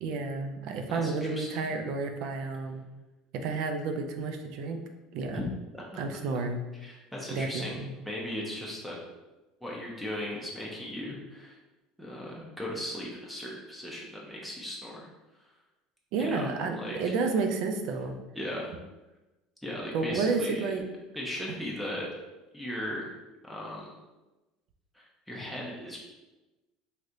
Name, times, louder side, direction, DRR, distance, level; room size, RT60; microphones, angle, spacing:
voice 1, 0.0-2.8 3.3-4.8 5.1-5.4 6.0-6.6 7.3-7.9 16.1-18.2 19.9-20.8, right 4 dB, 65° right, 6 dB, 0.4 m, -31 dB
voice 2, 0.9-1.7 5.3-5.4 5.7-6.0 6.8-7.8 8.0-9.0 9.6-11.6 12.0-15.1 16.2-17.1 18.4-18.7 19.6-20.6 21.1-22.1 22.5-23.1 23.4-23.9 24.9-26.0, left 1 dB, ahead, -4 dB, 0.7 m, -37 dB
3.1 x 2.8 x 2.5 m, 1.1 s
hypercardioid pair, 85°, 0 cm